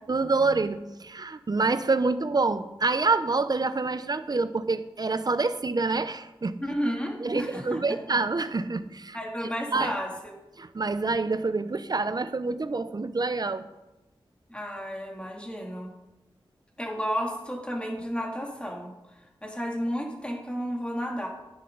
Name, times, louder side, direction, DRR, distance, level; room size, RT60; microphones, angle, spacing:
voice 1, 0.1-6.6 7.2-9.2 9.7-9.9 10.6-13.6, right 3 dB, 45° right, 13 dB, 0.7 m, -27 dB
voice 2, 6.6-7.8 9.1-10.3 14.5-15.9 16.8-18.9 19.4-21.3, equal, 10° left, 0 dB, 2.8 m, -32 dB
11.5 x 10.0 x 4.0 m, 1.0 s
cardioid pair, 45°, 9 cm